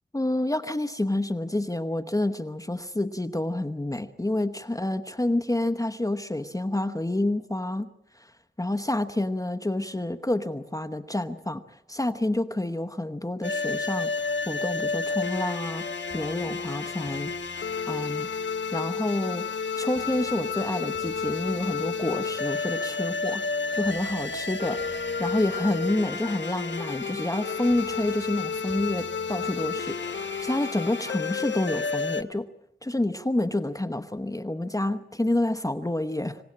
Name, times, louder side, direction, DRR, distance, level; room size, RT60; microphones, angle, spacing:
voice 1, 0.1-7.9 8.6-11.6 11.9-15.8 16.1-18.3 18.7-19.5 19.8-32.5 32.8-36.4, left 1 dB, 20° left, 10 dB, 1.0 m, -28 dB
sound 1, 13.4-32.2, left 4 dB, 85° left, 1.1 m, -31 dB
sound 2, 14.2-30.6, equal, 15° right, 5.0 m, -53 dB
26.0 x 18.0 x 8.6 m, 0.86 s
wide cardioid pair, 70°, 18 cm